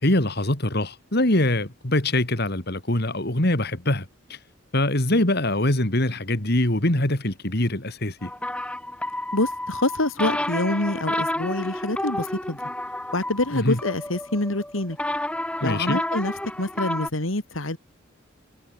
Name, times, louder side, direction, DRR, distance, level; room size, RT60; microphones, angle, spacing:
voice 1, 0.0-4.4 4.7-8.3 13.5-13.8 15.6-16.0, left 1 dB, 55° left, 3.2 m, -23 dB
sound 1, 8.2-17.1, left 1 dB, 5° left, 3.0 m, -30 dB
voice 2, 9.3-12.6 13.1-15.0 15.6-17.8, left 2 dB, 85° left, 2.8 m, -26 dB
head